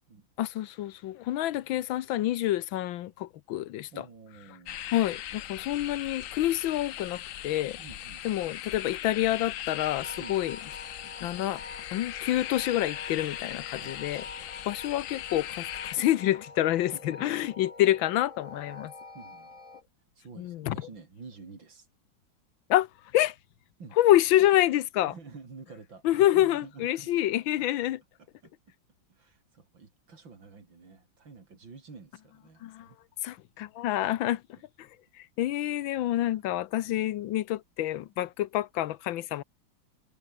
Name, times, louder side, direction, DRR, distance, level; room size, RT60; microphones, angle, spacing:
voice 1, 0.4-3.9 4.9-7.8 8.2-10.6 11.2-11.6 11.9-14.2 14.7-18.9 20.4-20.8 22.7-22.9 23.1-23.3 24.0-25.1 26.0-28.0 32.6-32.9 33.2-34.4 34.8-34.9 35.2-39.4, left 14 dB, 90° left, 1.6 m, -27 dB
voice 2, 3.9-4.8 7.8-8.3 10.2-10.4 13.8-14.7 16.8-17.3 19.1-19.6 20.2-21.9 23.8-24.0 25.1-27.1 27.6-27.7 28.2-28.5 29.1-33.0 34.3-34.4, right 4 dB, 75° right, 4.3 m, -49 dB
sound 1, 4.7-16.0, left 12 dB, 70° left, 0.7 m, -39 dB
sound 2, 10.0-19.8, left 3 dB, 40° left, 4.3 m, -47 dB
omnidirectional pair, 2.1 m